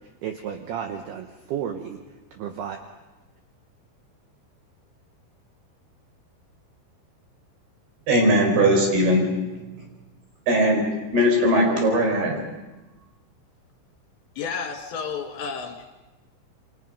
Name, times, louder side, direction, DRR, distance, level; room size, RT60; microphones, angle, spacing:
voice 1, 0.0-2.0 2.3-2.8, right 8 dB, 75° right, 5 dB, 2.5 m, -33 dB
voice 2, 8.1-9.6 10.5-10.9 11.1-12.4, equal, 50° right, 2 dB, 6.4 m, -20 dB
voice 3, 14.4-15.9, left 6 dB, 70° left, 3 dB, 3.9 m, -31 dB
28.5 x 24.0 x 5.3 m, 1.1 s
omnidirectional pair, 5.8 m